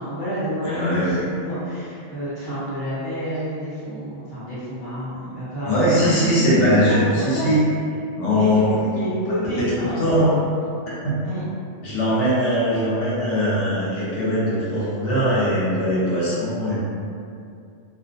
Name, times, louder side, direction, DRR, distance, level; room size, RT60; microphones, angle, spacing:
voice 1, 0.0-7.5 8.3-10.7 11.2-11.4, equal, 20° left, -13 dB, 0.9 m, -29 dB
voice 2, 0.6-1.3 5.6-7.6 8.2-8.8 9.6-9.7 10.0-10.3 11.0-11.2 11.8-16.8, equal, 80° left, -8 dB, 1.0 m, -20 dB
2.3 x 2.1 x 2.6 m, 2.4 s
omnidirectional pair, 1.2 m